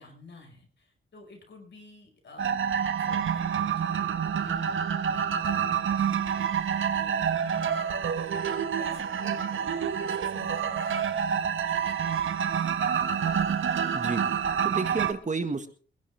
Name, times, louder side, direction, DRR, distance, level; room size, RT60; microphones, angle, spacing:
voice 1, 0.0-12.2, left 4 dB, 60° left, 2 dB, 5.7 m, -51 dB
sound 1, 2.4-15.1, right 7 dB, 75° right, 1.4 m, -28 dB
voice 2, 13.9-15.7, right 4 dB, 35° right, 8 dB, 1.9 m, -31 dB
24.5 x 11.0 x 3.6 m, 0.41 s
cardioid pair, 75°, 21 cm